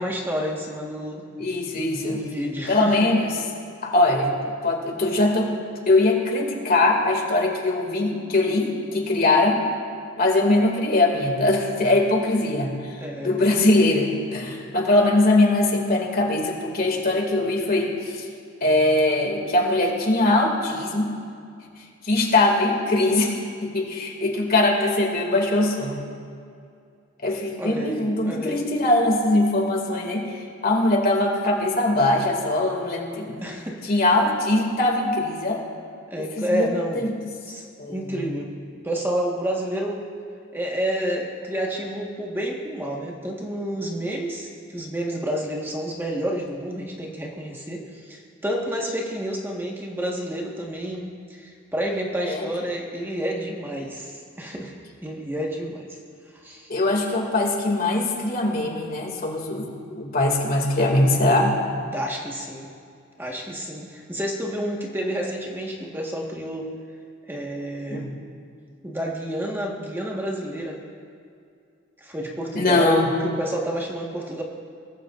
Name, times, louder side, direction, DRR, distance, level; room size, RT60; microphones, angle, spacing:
voice 1, 0.0-1.2 2.0-2.9 13.0-13.4 27.6-28.6 33.4-33.8 36.1-37.1 37.5-38.5 38.8-40.1 40.5-54.7 55.0-56.0 56.4-56.7 61.8-62.7 63.2-66.7 67.3-68.1 68.8-70.8 72.0-72.9 73.2-74.4, equal, 10° right, -2 dB, 1.5 m, -29 dB
voice 2, 1.4-2.2 2.7-3.3 3.8-4.3 4.6-5.5 5.9-9.6 10.2-18.2 18.6-21.1 22.0-26.0 27.2-33.4 33.8-35.6 36.4-36.7 36.9-37.1 37.8-38.1 52.2-52.5 56.7-61.6 67.9-68.1 72.5-73.1, left 2 dB, 50° left, 0 dB, 2.5 m, -21 dB
23.0 x 18.5 x 2.6 m, 2.4 s
head